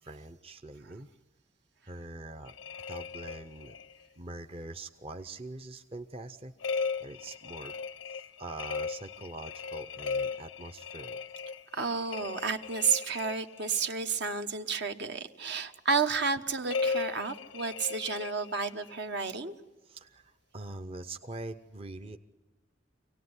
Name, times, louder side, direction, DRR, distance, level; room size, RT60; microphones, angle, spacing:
voice 1, 0.0-1.1 1.8-2.5 2.9-3.8 4.2-7.8 8.1-11.2 19.8-22.2, right 2 dB, 30° right, 6 dB, 0.7 m, -44 dB
sound 1, 2.5-4.0 6.6-14.0 16.7-19.0, left 5 dB, 90° left, 0.7 m, -37 dB
voice 2, 11.7-19.5, right 5 dB, 60° right, 8 dB, 1.1 m, -31 dB
25.0 x 18.0 x 9.7 m, 1.2 s
head